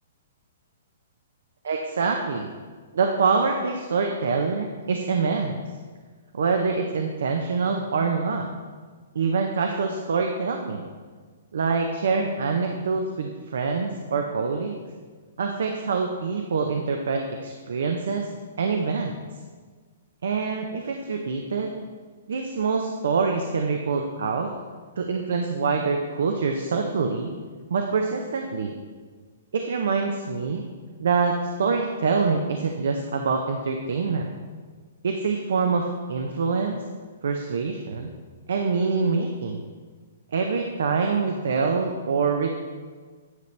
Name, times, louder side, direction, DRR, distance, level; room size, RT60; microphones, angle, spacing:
voice 1, 1.6-2.5 2.9-5.6 6.3-8.5 9.1-10.9 11.5-14.8 15.4-18.3 18.6-19.2 20.2-21.7 22.3-24.5 25.0-27.3 27.7-28.7 29.5-30.7 31.0-34.3 35.0-36.8 37.2-38.1 38.5-39.6 40.3-42.5, right 4 dB, 75° right, 3 dB, 0.6 m, -25 dB
9.5 x 5.1 x 3.2 m, 1.5 s
hypercardioid pair, 140°, 0 cm